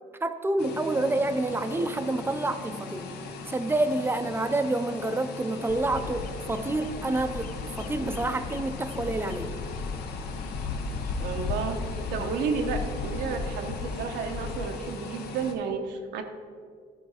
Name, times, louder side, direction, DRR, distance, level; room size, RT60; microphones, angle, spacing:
voice 1, 0.2-3.1 3.5-9.5 12.2-12.3, right 2 dB, 15° right, 9 dB, 0.5 m, -28 dB
sound 1, 0.6-15.5, left 4 dB, 70° left, 1.0 m, -40 dB
Bird vocalization bird call bird song, 5.7-14.7, left 4 dB, 55° left, 0.6 m, -35 dB
voice 2, 11.2-11.8 12.1-16.2, right 5 dB, 80° right, 5 dB, 0.9 m, -31 dB
11.5 x 4.6 x 4.9 m, 2.1 s
cardioid pair, 110°, 17 cm